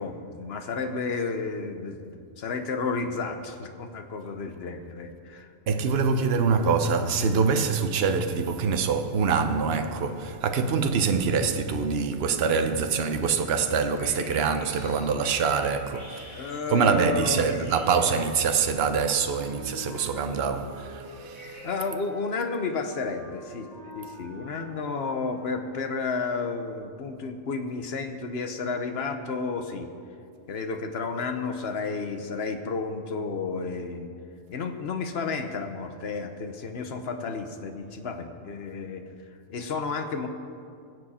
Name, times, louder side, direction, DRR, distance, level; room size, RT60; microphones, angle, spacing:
voice 1, 0.0-5.5 10.6-10.8 16.3-17.5 21.6-23.7 23.9-29.9 30.5-34.1 34.5-39.0 39.5-40.3, left 4 dB, 60° left, 1.2 m, -32 dB
voice 2, 5.7-21.6, right 5 dB, 60° right, 1.0 m, -25 dB
sound 1, 14.0-19.0 21.3-21.8, left 2 dB, 80° left, 2.7 m, -47 dB
Wind instrument woodwind instrument, 18.6-26.3, equal, 35° left, 2.0 m, -45 dB
22.0 x 7.5 x 4.3 m
omnidirectional pair, 1.3 m